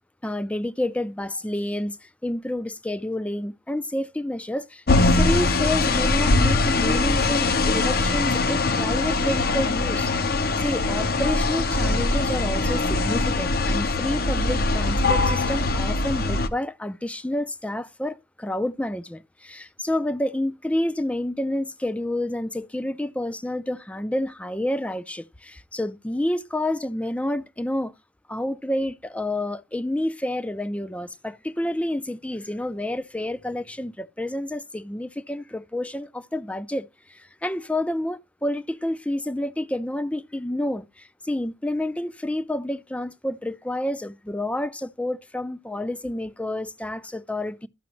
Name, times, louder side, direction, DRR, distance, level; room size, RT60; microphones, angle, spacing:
voice 1, 0.2-27.9 28.3-47.7, left 1 dB, 10° left, 0.4 m, -29 dB
sound 1, 4.9-16.5, left 3 dB, 60° left, 0.8 m, -22 dB
12.5 x 6.0 x 3.1 m
head